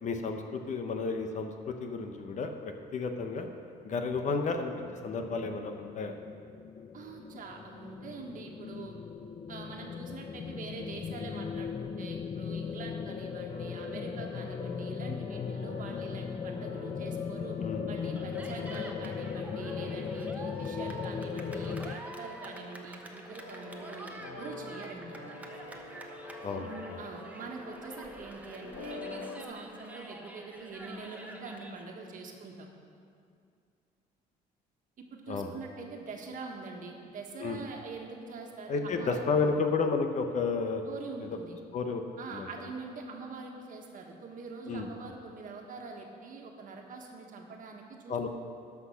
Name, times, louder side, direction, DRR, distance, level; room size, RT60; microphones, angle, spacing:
voice 1, 0.0-3.5 3.8-6.1 17.6-18.2 26.4-27.0 35.3-35.5 37.4-37.6 38.7-40.8 41.7-42.0 42.3-42.5 44.7-44.9 48.1-48.3, left 4 dB, 45° left, 5 dB, 0.9 m, -32 dB
sound 1, 4.8-22.0, left 6 dB, 30° left, 0.4 m, -38 dB
voice 2, 6.9-8.9 9.5-17.5 17.9-25.2 27.0-32.7 35.1-39.2 40.8-41.6 42.2-48.3, right 4 dB, 50° right, 1 dB, 1.5 m, -44 dB
sound 2, 13.5-29.4, left 2 dB, 90° left, 2.8 m, -46 dB
Cheering, 18.2-31.8, right 1 dB, 10° right, 1.0 m, -47 dB
12.5 x 6.0 x 5.7 m, 2.4 s
cardioid pair, 110°, 17 cm